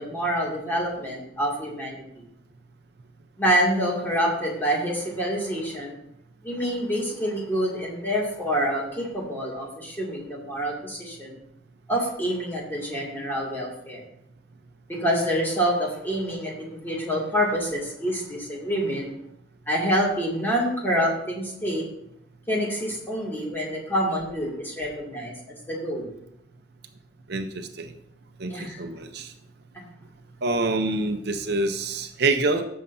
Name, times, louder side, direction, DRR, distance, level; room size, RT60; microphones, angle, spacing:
voice 1, 0.0-2.3 3.4-6.0 6.4-11.4 11.9-14.0 14.9-19.1 19.7-21.8 22.5-25.3 25.7-26.1 28.5-28.8 29.7-29.8, equal, 10° left, -3 dB, 2.3 m, -27 dB
voice 2, 27.3-27.9 28.4-29.3 30.4-32.6, right 2 dB, 60° right, 6 dB, 0.7 m, -26 dB
14.0 x 6.6 x 2.7 m, 0.77 s
head